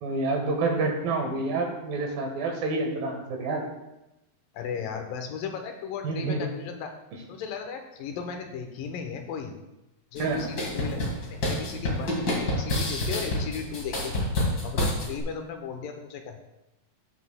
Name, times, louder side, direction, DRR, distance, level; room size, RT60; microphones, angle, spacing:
voice 1, 0.0-3.6 6.0-6.5 10.2-10.5, right 3 dB, 75° right, 1 dB, 3.1 m, -28 dB
voice 2, 4.5-6.9 7.3-9.6 10.1-14.1 14.6-16.4, left 6 dB, 80° left, 5 dB, 2.4 m, -36 dB
sound 1, 10.2-15.2, left 1 dB, 40° left, 1.7 m, -28 dB
17.0 x 6.1 x 2.2 m, 0.95 s
omnidirectional pair, 4.1 m